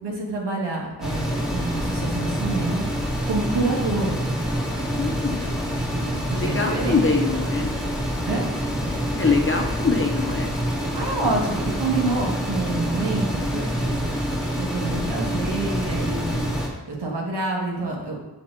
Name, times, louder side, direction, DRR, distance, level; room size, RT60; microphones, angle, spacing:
voice 1, 0.0-2.9 3.3-4.3 6.3-6.9 8.2-8.5 10.9-14.0 14.6-16.5 16.9-18.2, right 3 dB, 90° right, -2 dB, 1.5 m, -27 dB
sound 1, 1.0-16.7, equal, ahead, 1.9 m, -26 dB
voice 2, 5.0-5.5 6.3-7.8 8.9-10.5, left 4 dB, 30° left, 2 dB, 0.8 m, -24 dB
sound 2, 5.9-6.5 7.1-7.6 8.3-9.1 9.5-10.2 10.8-11.5 12.0-12.6 13.3-13.9 14.5-15.1, equal, 55° right, 1.8 m, -40 dB
6.5 x 4.4 x 6.0 m, 1.1 s
wide cardioid pair, 80°, 40 cm